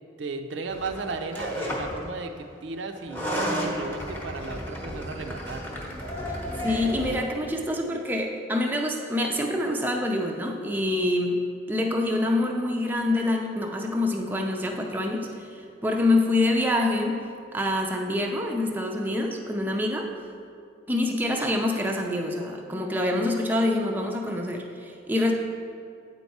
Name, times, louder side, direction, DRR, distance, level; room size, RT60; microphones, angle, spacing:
voice 1, 0.2-5.6, right 3 dB, 70° right, 5 dB, 0.5 m, -35 dB
sound 1, 0.7-2.1 3.0-7.2, equal, 10° left, 0.8 m, -32 dB
voice 2, 6.6-11.4 11.7-17.2 17.5-20.1 20.9-25.3, left 1 dB, 10° right, 1 dB, 0.4 m, -26 dB
8.4 x 4.6 x 4.1 m, 2.4 s
head